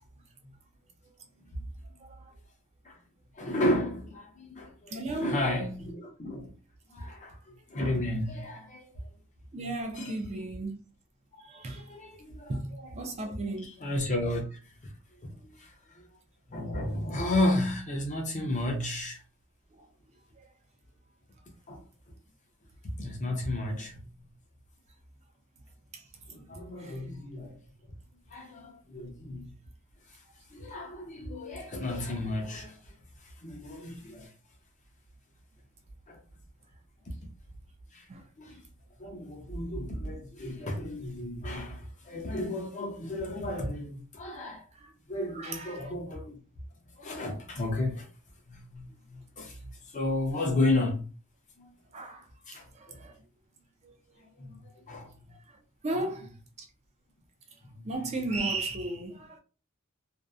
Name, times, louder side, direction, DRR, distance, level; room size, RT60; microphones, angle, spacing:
voice 1, 2.0-2.3 4.9-5.5 9.5-10.8 11.4-11.9 12.5-13.7 19.7-19.9 25.9-26.4 26.8-27.0 38.1-38.2 44.7-44.9 45.3-45.9 51.9-52.2 52.7-53.1 53.8-54.2 55.3-55.4 55.8-56.7 57.8-59.4, right 2 dB, 30° right, 0.4 m, -36 dB
voice 2, 3.4-6.5 6.9-8.9 10.0-10.1 11.3-11.5 11.7-12.8 13.2-13.4 13.6-14.6 15.2-15.7 16.5-19.2 21.7-21.8 23.0-24.3 26.3-27.6 28.3-29.5 30.5-32.8 33.4-34.3 36.1-36.2 37.9-38.0 38.4-38.6 39.0-44.7 45.1-46.4 47.0-48.1 48.5-49.6 49.9-51.0 51.6-51.7 52.5-53.0 54.4-55.3 57.8-57.9, left 1 dB, 35° left, 0.6 m, -33 dB
2.6 x 2.0 x 2.3 m
head